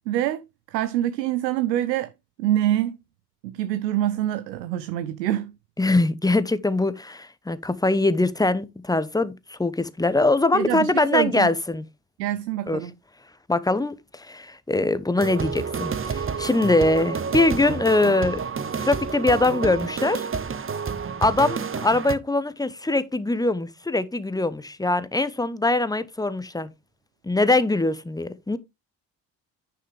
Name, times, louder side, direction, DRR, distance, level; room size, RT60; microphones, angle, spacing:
voice 1, 0.1-0.4 0.7-2.1 2.4-3.0 3.4-5.5 10.5-11.5 12.2-12.9, right 13 dB, 85° right, 0.6 m, -25 dB
voice 2, 5.8-11.9 12.7-12.8 13.5-18.4 18.8-20.2 21.2-26.7 27.2-28.6, left 2 dB, 10° left, 0.9 m, -22 dB
sound 1, 15.2-22.1, right 6 dB, 25° right, 0.9 m, -29 dB
9.9 x 5.8 x 3.4 m
hypercardioid pair, 45°, 49 cm